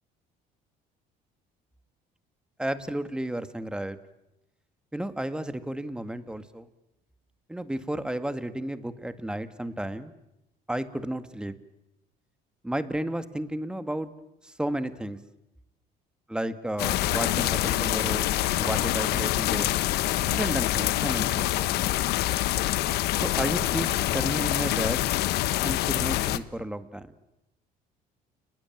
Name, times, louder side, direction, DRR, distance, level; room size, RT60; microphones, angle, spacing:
voice 1, 2.6-4.0 4.9-6.7 7.5-10.1 10.7-11.5 12.6-14.1 14.4-15.2 16.3-19.7 20.3-21.5 23.2-23.9 24.1-25.1 25.6-27.1, right 1 dB, 5° right, 11 dB, 1.8 m, -32 dB
sound 1, 16.8-26.4, left 15 dB, 75° left, 1.1 m, -26 dB
30.0 x 20.0 x 9.1 m, 0.89 s
cardioid pair, 115°, 17 cm